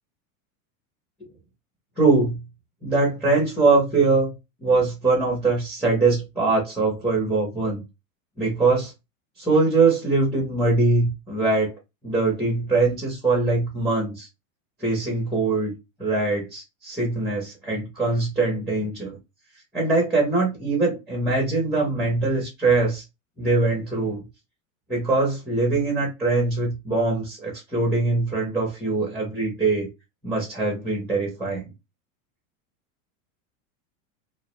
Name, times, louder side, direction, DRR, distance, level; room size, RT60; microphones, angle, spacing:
voice 1, 2.0-2.4 2.8-4.3 4.6-7.8 8.4-8.9 9.4-11.7 12.0-14.3 14.8-15.7 16.0-19.2 19.7-23.0 23.4-24.2 24.9-29.9 30.2-31.6, right 3 dB, ahead, 0.4 m, -22 dB
2.2 x 2.1 x 2.8 m
supercardioid pair, 150°, 42 cm